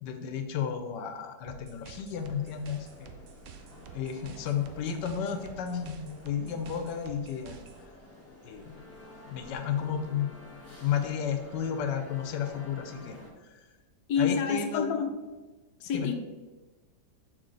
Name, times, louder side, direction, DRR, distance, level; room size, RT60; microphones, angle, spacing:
voice 1, 0.0-3.1 3.9-7.6 8.4-8.8 9.3-10.3 10.8-13.7 14.2-15.0 15.9-16.1, left 8 dB, 90° left, 5 dB, 1.3 m, -33 dB
sound 1, 1.5-7.8, right 8 dB, 65° right, 0.8 m, -50 dB
sound 2, 2.1-13.3, left 2 dB, 10° left, 1.0 m, -50 dB
voice 2, 14.1-15.1 15.8-16.2, left 6 dB, 70° left, 4 dB, 1.2 m, -28 dB
6.3 x 4.3 x 3.8 m, 1.2 s
omnidirectional pair, 1.8 m